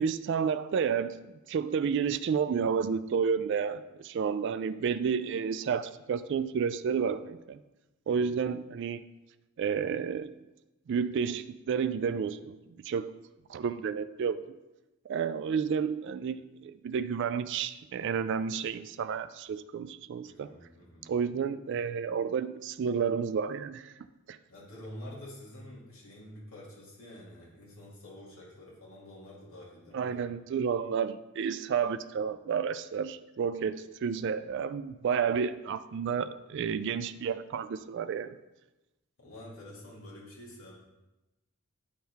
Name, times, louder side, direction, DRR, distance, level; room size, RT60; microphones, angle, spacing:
voice 1, 0.0-7.6 8.1-9.0 9.6-10.3 10.9-12.6 12.8-13.1 13.5-14.4 15.1-20.5 21.1-23.9 24.3-24.4 29.9-38.4, right 6 dB, 55° right, 12 dB, 0.3 m, -31 dB
voice 2, 20.2-21.1 24.5-30.3 39.2-40.7, left 1 dB, 90° left, -6 dB, 2.2 m, -48 dB
10.5 x 4.5 x 3.4 m, 1.0 s
head